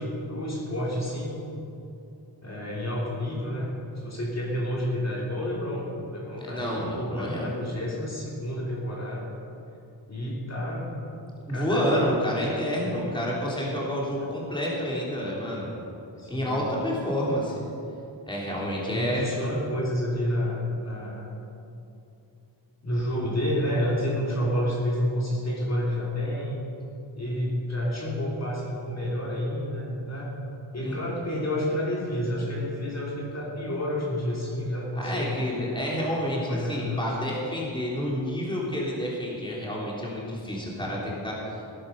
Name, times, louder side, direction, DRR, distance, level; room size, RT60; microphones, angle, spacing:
voice 1, 0.0-1.4 2.4-3.7 4.0-5.8 6.1-9.3 10.1-10.9 11.5-12.5 12.9-13.1 14.2-14.3 16.2-16.6 18.9-21.3 22.8-26.6 27.1-30.3 30.7-35.4 36.3-37.0 40.8-41.0, equal, 35° left, -4 dB, 3.0 m, -29 dB
voice 2, 6.4-7.5 11.5-15.7 16.3-17.6 18.3-19.2 30.8-30.9 35.0-41.6, equal, 10° left, -4 dB, 3.2 m, -29 dB
18.5 x 10.5 x 5.4 m, 2.7 s
wide cardioid pair, 125°, 45 cm